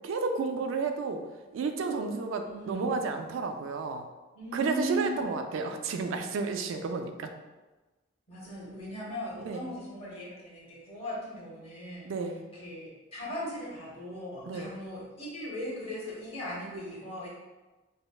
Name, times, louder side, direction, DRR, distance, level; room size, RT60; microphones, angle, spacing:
voice 1, 0.0-1.2 1.5-4.1 4.5-7.3 9.5-9.7 12.0-12.4 14.5-14.7, right 4 dB, 75° right, 6 dB, 0.3 m, -31 dB
voice 2, 2.5-2.9 4.3-5.3 6.9-7.0 8.3-12.1 12.5-17.3, equal, 30° left, -5 dB, 0.9 m, -38 dB
5.0 x 2.0 x 2.3 m, 1.2 s
head